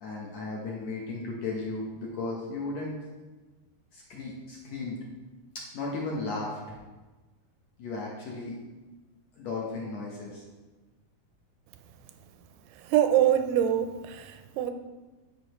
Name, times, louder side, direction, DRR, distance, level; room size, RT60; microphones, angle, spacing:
voice 1, 0.0-2.9 3.9-5.0 5.7-6.7 7.8-8.6 9.4-10.4, left 3 dB, 70° left, -3 dB, 1.6 m, -35 dB
voice 2, 12.8-14.7, right 10 dB, 90° right, 8 dB, 2.6 m, -25 dB
12.0 x 5.4 x 3.1 m, 1.2 s
omnidirectional pair, 4.5 m